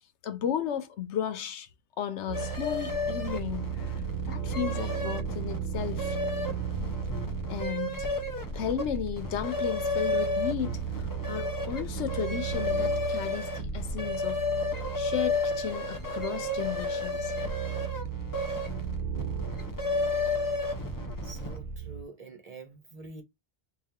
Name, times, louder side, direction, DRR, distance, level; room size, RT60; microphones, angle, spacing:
voice 1, 0.2-1.7 2.0-4.0 4.3-6.2 7.5-8.1 8.5-14.5 15.0-17.3, left 9 dB, 85° left, 1.0 m, -34 dB
sound 1, 2.3-21.8, left 3 dB, 25° left, 0.6 m, -32 dB
sound 2, 2.3-22.0, right 9 dB, 85° right, 1.0 m, -36 dB
voice 2, 21.2-23.2, right 3 dB, 40° right, 0.9 m, -46 dB
4.2 x 2.4 x 3.6 m
omnidirectional pair, 1.1 m